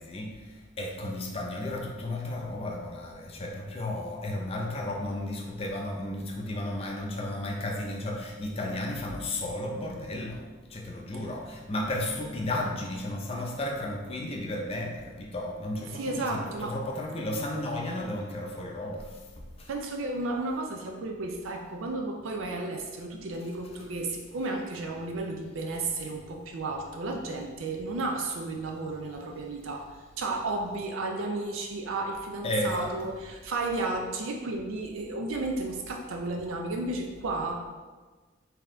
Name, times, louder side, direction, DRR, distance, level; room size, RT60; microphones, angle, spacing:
voice 1, 0.0-10.4 10.7-19.2 19.6-19.7 32.4-32.9, left 1 dB, 30° left, 0 dB, 0.5 m, -33 dB
voice 2, 15.9-16.8 19.7-29.9 30.2-37.6, right 2 dB, 80° right, 2 dB, 0.4 m, -33 dB
3.9 x 2.8 x 3.7 m, 1.3 s
head